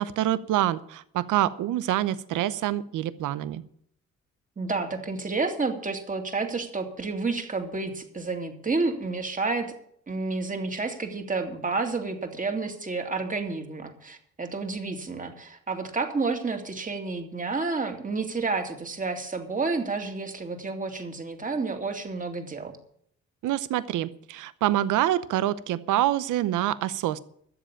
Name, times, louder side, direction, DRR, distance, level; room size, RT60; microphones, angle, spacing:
voice 1, 0.0-3.6 23.4-27.2, right 13 dB, 80° right, 16 dB, 0.8 m, -26 dB
voice 2, 4.6-9.7 10.1-22.8, right 3 dB, 25° right, 5 dB, 2.5 m, -30 dB
13.0 x 7.7 x 8.7 m, 0.67 s
cardioid pair, 90°, 30 cm